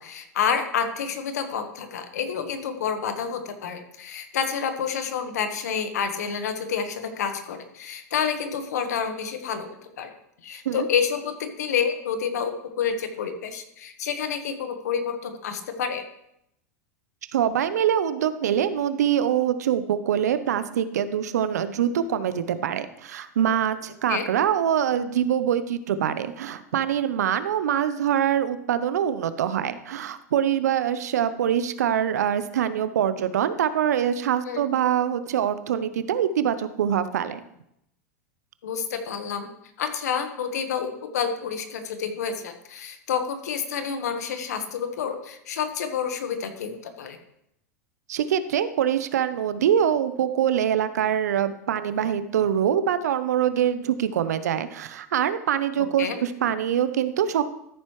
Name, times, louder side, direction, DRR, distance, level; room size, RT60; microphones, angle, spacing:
voice 1, 0.0-10.1 10.4-16.0 24.1-24.3 34.5-34.6 38.6-39.5 39.8-47.2 55.8-56.2, left 7 dB, 80° left, 7 dB, 1.4 m, -29 dB
voice 2, 17.3-37.4 48.1-57.4, right 9 dB, 80° right, 12 dB, 0.7 m, -24 dB
13.5 x 7.3 x 3.2 m, 0.78 s
hypercardioid pair, 100°, 9 cm